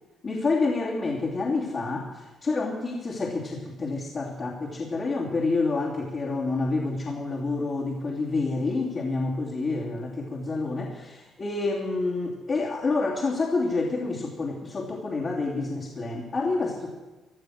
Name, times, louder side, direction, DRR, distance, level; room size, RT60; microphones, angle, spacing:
voice 1, 0.2-16.9, left 3 dB, 45° left, -5 dB, 2.9 m, -28 dB
17.0 x 11.5 x 6.5 m, 1.1 s
cardioid pair, 90°, 0 cm